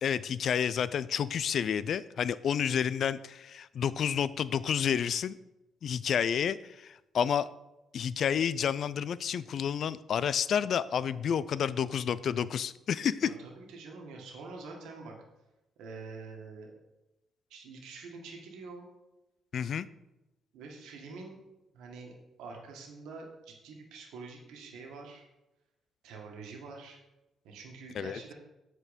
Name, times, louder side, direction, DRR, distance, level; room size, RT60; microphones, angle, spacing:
voice 1, 0.0-5.4 5.8-7.5 7.9-13.3 19.5-19.9 27.9-28.2, left 8 dB, 60° left, 17 dB, 0.4 m, -30 dB
voice 2, 13.2-15.1 15.8-16.7 17.5-18.9 20.5-21.4 21.7-22.1 22.4-25.3 26.0-27.0 27.4-28.3, right 4 dB, 90° right, 1 dB, 1.6 m, -46 dB
8.4 x 4.5 x 5.1 m, 0.95 s
cardioid pair, 90°, 0 cm